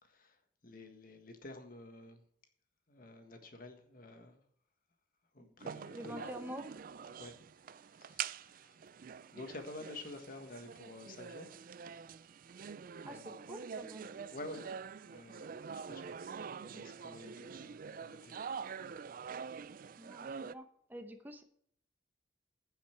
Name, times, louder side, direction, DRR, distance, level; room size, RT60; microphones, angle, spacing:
voice 1, 0.0-2.2 2.9-4.4 5.3-6.4 7.2-7.4 8.0-8.8 9.3-11.5 13.1-13.4 14.3-14.7 15.1-16.2 16.6-18.3, left 2 dB, 50° left, 1.6 m, -50 dB
sound 1, 5.6-20.5, right 6 dB, 50° right, 0.4 m, -46 dB
voice 2, 5.9-6.6 13.0-14.1 20.0-21.4, equal, 10° right, 0.9 m, -47 dB
15.5 x 5.7 x 4.6 m
head